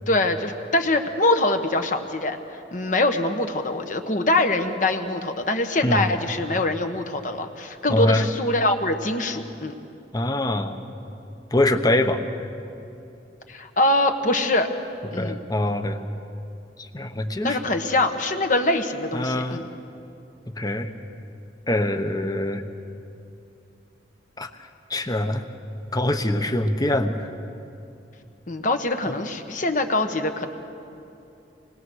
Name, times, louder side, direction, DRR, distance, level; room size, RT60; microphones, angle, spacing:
voice 1, 0.1-2.4 2.7-9.7 13.5-14.7 15.1-15.4 17.4-19.6 28.5-30.5, left 2 dB, 45° left, 6 dB, 1.3 m, -23 dB
voice 2, 7.9-8.2 10.1-10.8 11.5-12.2 15.2-16.0 16.8-17.6 19.1-19.7 20.6-20.9 21.7-22.6 24.4-25.4 25.9-27.3 29.1-29.2, left 1 dB, 20° left, 7 dB, 1.0 m, -24 dB
26.0 x 20.5 x 6.4 m, 2.7 s
head